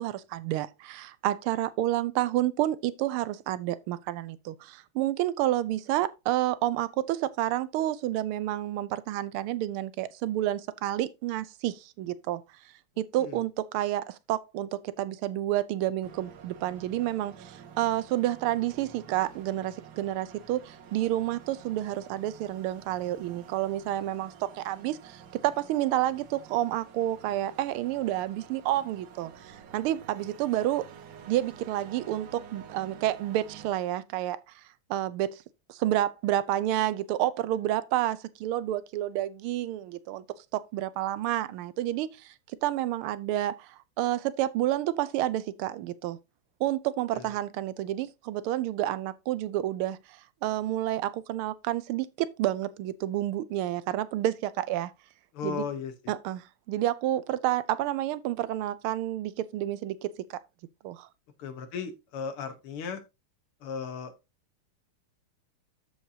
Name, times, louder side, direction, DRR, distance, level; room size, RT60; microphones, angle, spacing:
voice 1, 0.0-12.4 13.0-30.9 31.2-34.4 34.9-35.4 35.7-40.2 40.5-42.3 42.6-46.2 46.6-54.9 55.4-55.7 56.1-60.4 60.8-61.1, right 13 dB, 85° right, 1.5 m, -29 dB
sound 1, 16.0-33.7, right 7 dB, 65° right, 1.6 m, -50 dB
voice 2, 55.3-56.1 61.4-63.0 63.6-64.1, left 6 dB, 85° left, 2.1 m, -36 dB
13.0 x 4.7 x 2.7 m
omnidirectional pair, 2.3 m